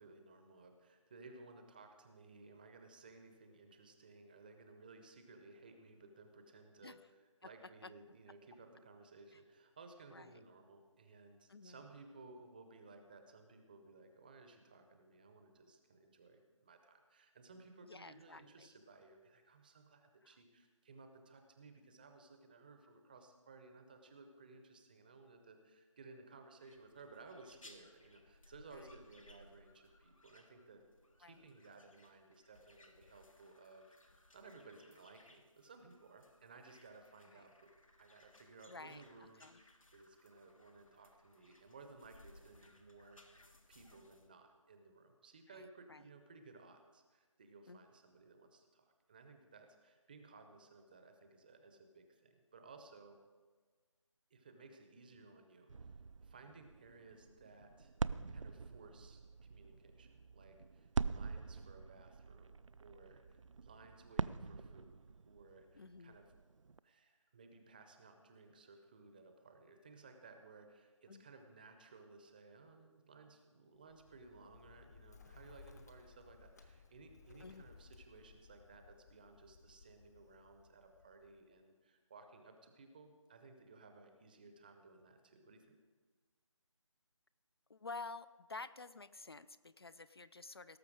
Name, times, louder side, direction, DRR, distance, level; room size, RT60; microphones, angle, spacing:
voice 1, 0.0-30.8 31.2-33.9 34.3-43.2 43.7-53.2 54.3-55.9 56.2-57.9 58.3-59.2 59.5-66.3 66.8-85.8, right 3 dB, 15° right, 6 dB, 0.7 m, -59 dB
voice 2, 11.5-11.8 17.9-18.7 20.2-20.4 28.7-28.9 31.2-31.4 37.3-37.5 38.7-39.0 39.4-39.6 45.5-46.0 47.7-47.8 65.8-66.2 71.1-71.2 77.4-77.6 87.7-90.8, left 3 dB, 50° left, 15 dB, 0.4 m, -51 dB
sound 1, 26.6-44.3, left 1 dB, 85° left, 1.6 m, -65 dB
sound 2, 55.7-66.8, right 4 dB, 70° right, 0.4 m, -44 dB
Bird, 73.8-81.6, left 4 dB, 30° left, 0.8 m, -61 dB
18.0 x 6.6 x 4.9 m, 1.4 s
figure-of-eight pair, 160°, 17 cm